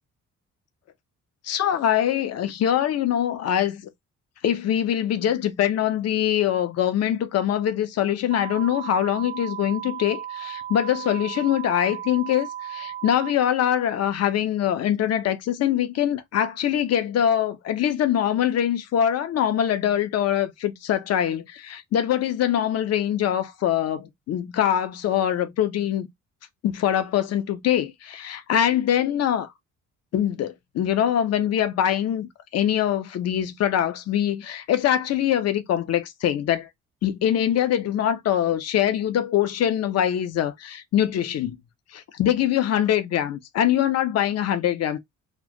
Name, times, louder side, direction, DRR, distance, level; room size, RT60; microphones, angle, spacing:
voice 1, 1.4-3.8 4.4-26.1 26.6-29.5 30.1-36.7 37.0-41.6 41.9-45.0, left 10 dB, 40° left, 0.5 m, -23 dB
sound 1, 8.3-13.3, right 11 dB, 65° right, 0.6 m, -35 dB
2.4 x 2.2 x 3.7 m
figure-of-eight pair, 45°, 42 cm